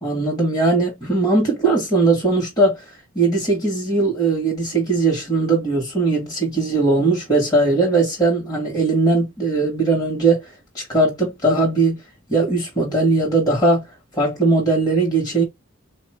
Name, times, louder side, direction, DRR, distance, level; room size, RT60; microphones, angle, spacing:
voice 1, 0.0-12.0 12.3-13.8 14.2-15.4, right 3 dB, 15° left, 0.9 m, -19 dB
3.8 x 2.1 x 2.9 m
head